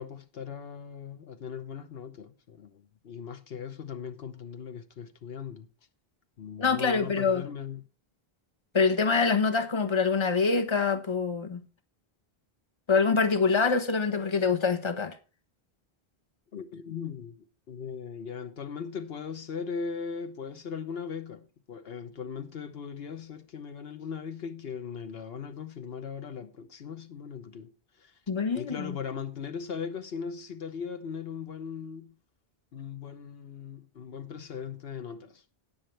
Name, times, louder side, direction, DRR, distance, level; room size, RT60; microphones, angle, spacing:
voice 1, 0.0-5.7 6.4-7.8 16.5-27.7 28.0-28.2 28.5-32.2 32.7-35.4, left 6 dB, 70° left, 1.1 m, -39 dB
voice 2, 6.6-7.4 8.7-11.6 12.9-15.1 28.3-29.0, left 4 dB, 30° left, 1.1 m, -25 dB
18.0 x 6.0 x 3.2 m
omnidirectional pair, 1.0 m